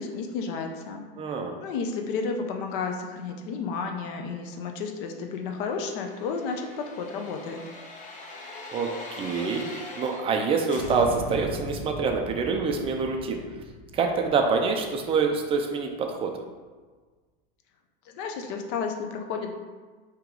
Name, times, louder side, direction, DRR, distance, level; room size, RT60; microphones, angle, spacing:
voice 1, 0.0-1.0 1.3-7.6 18.0-19.5, left 5 dB, 60° left, 4 dB, 0.6 m, -32 dB
voice 2, 1.2-1.6 8.7-8.9 9.2-13.4 13.9-16.3, right 5 dB, 20° right, 3 dB, 0.4 m, -26 dB
sound 1, 5.7-10.4 10.7-15.5 15.9-16.0, left 2 dB, 25° left, 0.7 m, -40 dB
4.6 x 2.9 x 3.7 m, 1.4 s
supercardioid pair, 140°, 29 cm